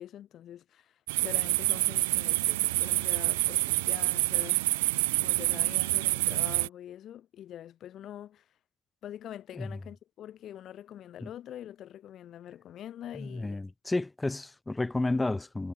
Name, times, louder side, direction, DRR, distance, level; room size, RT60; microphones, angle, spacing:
voice 1, 0.0-4.6 5.2-8.5 9.0-13.6, left 11 dB, 35° left, 3.1 m, -45 dB
sound 1, 1.1-6.7, right 22 dB, 65° right, 0.7 m, -27 dB
voice 2, 13.1-15.7, left 2 dB, 10° left, 0.9 m, -31 dB
supercardioid pair, 120°, 0 cm